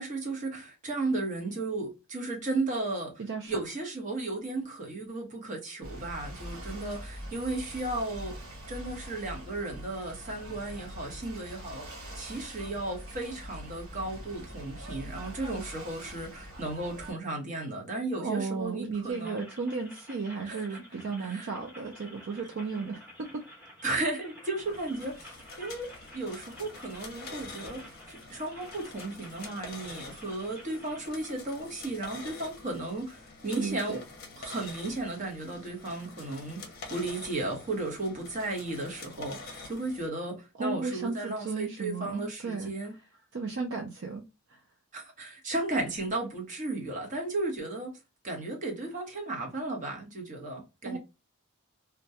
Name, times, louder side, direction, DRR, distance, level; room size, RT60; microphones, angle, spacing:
voice 1, 0.0-3.1 3.5-8.4 8.7-11.9 12.2-19.4 20.4-20.8 21.2-21.5 23.8-34.0 34.4-42.9 44.9-47.9 48.2-51.0, right 2 dB, 35° right, 0.9 m, -35 dB
voice 2, 3.2-3.5 18.2-23.4 33.5-34.0 40.6-42.7 43.3-44.2 44.5-44.6 50.8-51.0, right 4 dB, 55° right, 0.4 m, -34 dB
Ocean / Boat Water vehicle, 5.8-17.1, equal, 75° right, 1.1 m, -43 dB
sound 1, 19.1-31.1, equal, 10° right, 1.0 m, -51 dB
sound 2, 24.6-40.1, left 3 dB, 45° left, 0.6 m, -47 dB
2.3 x 2.2 x 2.6 m
head